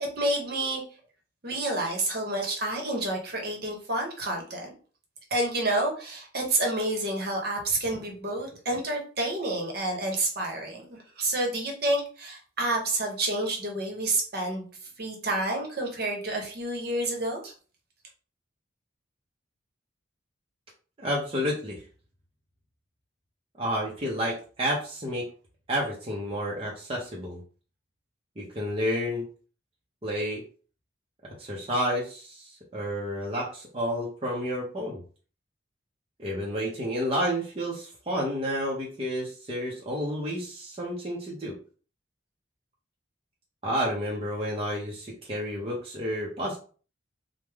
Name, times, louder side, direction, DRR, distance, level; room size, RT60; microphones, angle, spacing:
voice 1, 0.2-0.8 1.4-4.7 5.3-14.7 15.0-17.5, right 2 dB, 50° right, 1 dB, 0.9 m, -29 dB
voice 2, 21.0-21.8 23.6-25.3 25.7-27.4 28.4-29.2 30.0-30.4 31.4-35.0 36.2-41.5 43.6-46.6, equal, 30° right, -4 dB, 0.6 m, -30 dB
3.3 x 2.1 x 3.4 m, 0.39 s
head